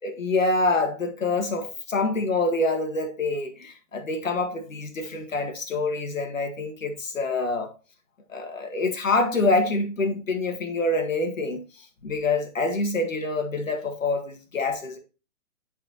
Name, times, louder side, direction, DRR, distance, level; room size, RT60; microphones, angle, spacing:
voice 1, 0.0-7.7 8.3-15.0, left 2 dB, 80° left, 1.9 m, -26 dB
11.0 x 4.3 x 2.9 m
hypercardioid pair, 135°, 39 cm